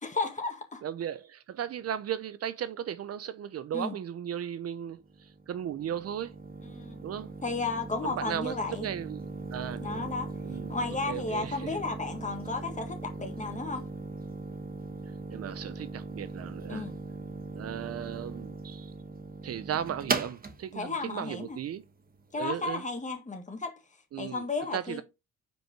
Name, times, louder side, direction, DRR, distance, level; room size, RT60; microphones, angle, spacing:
voice 1, 0.0-0.8 3.7-4.0 6.6-7.0 7.4-8.9 9.8-10.3 10.7-13.9 16.7-17.0 20.7-21.6 22.3-23.7 24.2-25.0, left 3 dB, 25° left, 1.8 m, -33 dB
voice 2, 0.8-6.4 7.0-7.3 8.0-10.1 10.4-11.8 15.3-16.9 17.5-18.9 19.4-21.8 22.4-22.8 24.1-24.4 24.7-25.0, right 10 dB, 55° right, 0.6 m, -36 dB
sound 1, 5.0-22.6, right 3 dB, 30° right, 1.2 m, -39 dB
5.3 x 4.6 x 4.6 m
cardioid pair, 90°, 30 cm